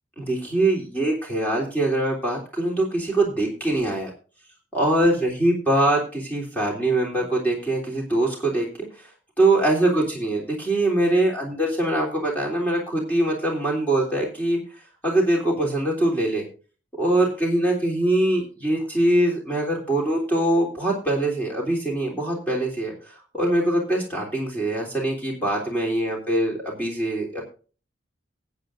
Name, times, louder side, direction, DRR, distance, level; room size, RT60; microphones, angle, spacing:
voice 1, 0.2-4.1 4.7-8.7 9.4-14.6 15.0-16.4 17.0-22.9 23.3-27.4, right 1 dB, 10° left, -2 dB, 3.3 m, -23 dB
19.5 x 8.6 x 2.6 m, 0.37 s
head